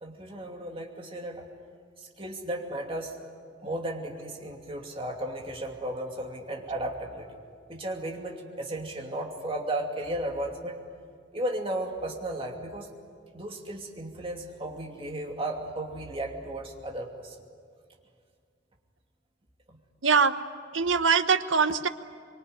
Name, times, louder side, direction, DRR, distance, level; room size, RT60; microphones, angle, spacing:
voice 1, 0.0-1.4 2.0-3.3 3.6-7.3 7.7-10.8 11.3-12.9 13.3-17.4 19.7-19.8, right 1 dB, 30° right, 1 dB, 2.7 m, -35 dB
voice 2, 20.0-20.3 20.7-21.9, right 5 dB, 90° right, 10 dB, 1.1 m, -22 dB
25.0 x 23.5 x 9.3 m, 2.1 s
head